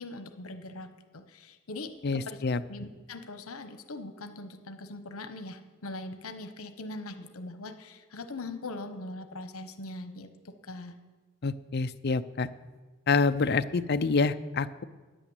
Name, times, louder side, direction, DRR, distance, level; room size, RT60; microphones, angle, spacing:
voice 1, 0.0-2.4 2.7-10.9, left 2 dB, 80° left, 8 dB, 1.0 m, -41 dB
voice 2, 2.0-2.6 11.4-12.5 13.1-14.8, left 4 dB, 50° left, 11 dB, 0.5 m, -27 dB
10.5 x 9.0 x 8.2 m, 1.3 s
head